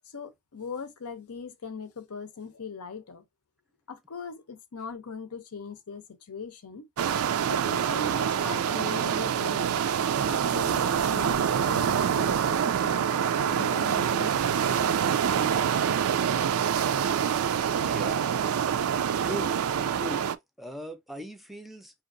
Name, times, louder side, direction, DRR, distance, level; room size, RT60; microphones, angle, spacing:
voice 1, 0.1-3.2 3.9-6.9 7.5-15.6, left 5 dB, 85° left, 0.7 m, -41 dB
sound 1, 7.0-20.4, right 8 dB, 70° right, 0.4 m, -26 dB
voice 2, 17.8-18.2 19.2-19.6 20.0-20.2 20.6-22.0, equal, ahead, 0.4 m, -38 dB
5.0 x 2.8 x 2.5 m
head